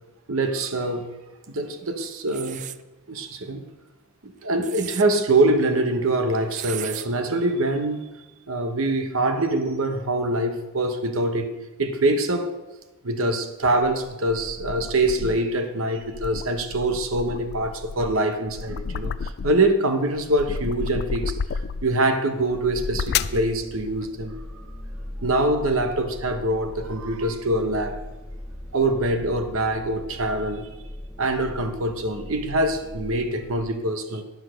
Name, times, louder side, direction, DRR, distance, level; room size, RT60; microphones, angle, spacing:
voice 1, 0.3-1.1 1.5-2.7 3.1-3.7 4.2-8.0 8.5-12.6 13.0-24.4 25.2-28.0 28.7-30.7 31.2-34.2, right 2 dB, 75° right, 1.0 m, -24 dB
sound 1, 2.3-2.8 4.4-5.1 6.5-7.1, right 12 dB, 35° right, 0.3 m, -35 dB
sound 2, 13.6-15.5 16.0-19.8 20.1-22.0 22.6-23.5, left 6 dB, 50° left, 0.4 m, -31 dB
sound 3, 22.4-33.7, left 1 dB, 5° right, 0.9 m, -39 dB
10.5 x 6.4 x 6.3 m
head